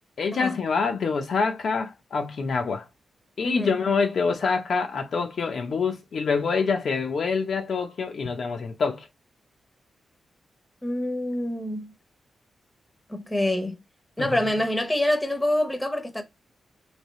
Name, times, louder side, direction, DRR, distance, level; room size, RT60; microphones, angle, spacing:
voice 1, 0.2-2.8 3.4-9.1 14.2-14.6, left 5 dB, 60° left, 0.7 m, -26 dB
voice 2, 10.8-11.9 13.1-13.8 14.2-16.2, left 1 dB, 10° left, 0.8 m, -26 dB
3.3 x 2.8 x 4.1 m
wide cardioid pair, 130°, 0 cm